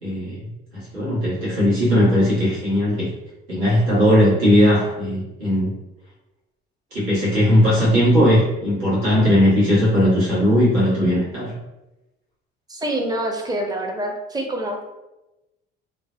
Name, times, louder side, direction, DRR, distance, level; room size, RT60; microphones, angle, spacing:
voice 1, 0.0-3.1 3.5-5.7 6.9-11.5, equal, 80° right, -9 dB, 1.2 m, -18 dB
voice 2, 12.7-15.0, right 1 dB, 10° right, 2 dB, 0.6 m, -26 dB
2.5 x 2.1 x 2.5 m, 0.98 s
hypercardioid pair, 55°, 32 cm